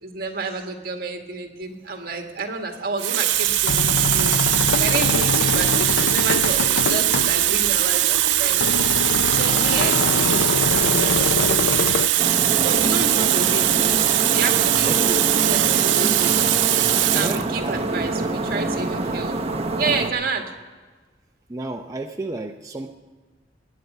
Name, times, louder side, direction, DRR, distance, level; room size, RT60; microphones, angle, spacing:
voice 1, 0.0-4.4 4.8-8.7 9.3-12.2 12.6-14.0 14.3-14.9 15.5-16.4 17.1-19.4 19.8-20.5, right 3 dB, 55° right, 3 dB, 1.8 m, -30 dB
Water tap faucet, 2.2-2.4 3.0-17.5 18.4-18.6, right 13 dB, 85° right, 0.6 m, -20 dB
sound 1, 3.4-12.1, left 5 dB, 80° left, 0.5 m, -25 dB
sound 2, 12.2-20.1, right 2 dB, 35° right, 1.0 m, -26 dB
voice 2, 14.8-15.2 17.1-18.1 21.5-23.0, right 2 dB, 20° right, 3 dB, 0.5 m, -32 dB
19.5 x 9.2 x 5.4 m, 1.4 s
head